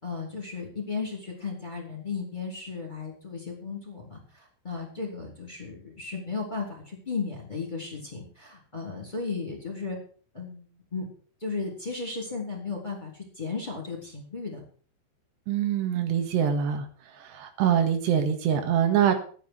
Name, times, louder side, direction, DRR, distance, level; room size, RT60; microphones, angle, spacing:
voice 1, 0.0-10.0 10.3-11.1 11.4-14.6, left 4 dB, 10° left, -1 dB, 4.1 m, -35 dB
voice 2, 15.5-16.9 17.2-19.2, right 9 dB, 80° right, 6 dB, 3.8 m, -24 dB
13.5 x 9.5 x 6.7 m, 0.43 s
omnidirectional pair, 4.9 m